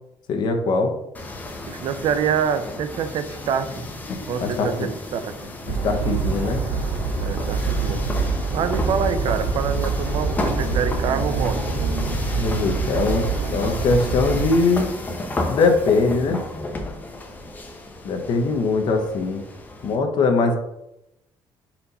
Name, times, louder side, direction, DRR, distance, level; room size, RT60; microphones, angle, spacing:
voice 1, 0.3-0.9 4.1-4.9 5.7-6.6 12.3-13.3 13.5-14.9 15.5-16.5 18.0-19.4 19.8-20.6, left 3 dB, 50° left, 4 dB, 0.9 m, -21 dB
sound 1, 1.1-20.0, left 2 dB, 15° left, 0.7 m, -33 dB
voice 2, 1.7-3.9 4.3-5.5 7.2-11.8, right 7 dB, 60° right, 10 dB, 0.5 m, -26 dB
sound 2, 5.7-14.4, right 4 dB, 85° right, 1.6 m, -25 dB
4.4 x 4.2 x 5.3 m, 0.88 s
cardioid pair, 170°, 10 cm